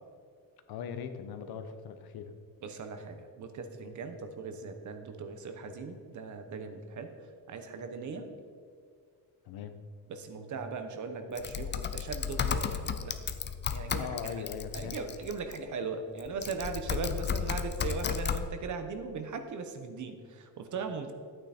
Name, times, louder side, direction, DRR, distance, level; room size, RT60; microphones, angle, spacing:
voice 1, 0.7-2.3 8.1-8.4 9.4-9.8 14.0-15.0, left 7 dB, 90° left, 8 dB, 1.0 m, -40 dB
voice 2, 2.6-7.1 7.5-8.3 10.1-13.2 13.7-14.3 14.7-21.1, right 4 dB, 55° right, 7 dB, 1.1 m, -38 dB
Typing, 11.3-15.6 16.2-18.4, left 7 dB, 30° left, 0.5 m, -34 dB
13.5 x 9.0 x 4.3 m, 2.1 s
cardioid pair, 175°, 36 cm